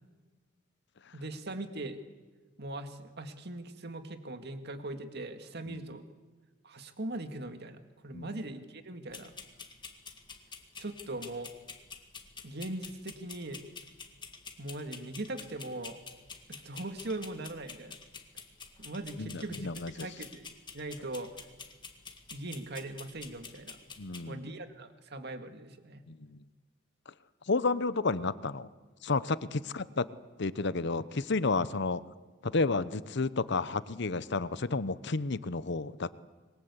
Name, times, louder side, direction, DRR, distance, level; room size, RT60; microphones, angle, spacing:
voice 1, 1.1-2.0 2.6-6.1 6.6-9.3 10.8-11.5 12.4-13.6 14.6-16.0 16.5-18.0 18.8-19.7 20.0-20.5 20.7-21.3 22.3-23.8 24.2-26.0, right 2 dB, 60° right, 8 dB, 2.0 m, -40 dB
sound 1, 9.1-24.2, left 5 dB, 25° left, 2.1 m, -49 dB
voice 2, 19.2-20.1 24.0-24.4 26.1-26.4 27.5-28.7 29.0-30.1 30.4-32.0 32.4-36.1, left 3 dB, 60° left, 16 dB, 0.9 m, -31 dB
26.5 x 22.0 x 8.3 m, 1.3 s
head